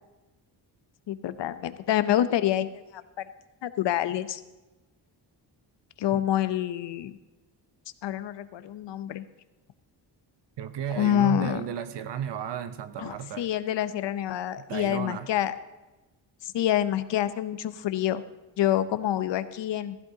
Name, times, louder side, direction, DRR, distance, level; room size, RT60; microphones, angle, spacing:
voice 1, 1.1-3.2 3.6-4.4 6.0-7.2 8.0-9.2 11.0-11.6 13.0-15.5 16.4-18.2 18.6-20.0, left 11 dB, 80° left, 12 dB, 0.8 m, -27 dB
voice 2, 10.6-13.5 14.6-15.3, right 9 dB, 75° right, 11 dB, 0.9 m, -34 dB
15.5 x 15.5 x 2.8 m, 1.1 s
wide cardioid pair, 155°, 43 cm